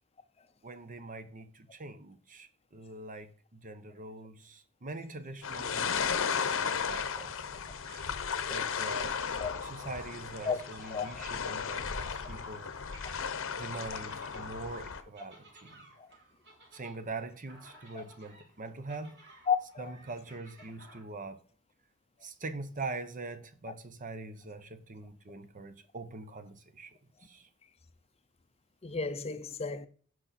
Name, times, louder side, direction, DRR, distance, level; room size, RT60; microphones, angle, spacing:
voice 1, 0.6-7.7 8.4-9.2 9.6-12.7 13.5-15.9 16.7-19.1 19.8-21.4 22.2-27.5, right 3 dB, 40° right, 0.8 m, -43 dB
sound 1, 5.4-15.0, left 6 dB, 65° left, 0.9 m, -35 dB
sound 2, 5.9-21.0, right 1 dB, 60° right, 4.1 m, -56 dB
voice 2, 10.9-11.2 16.0-16.1 17.9-18.0 19.5-19.9 28.8-29.9, left 6 dB, 30° left, 0.6 m, -33 dB
16.0 x 5.7 x 4.2 m
head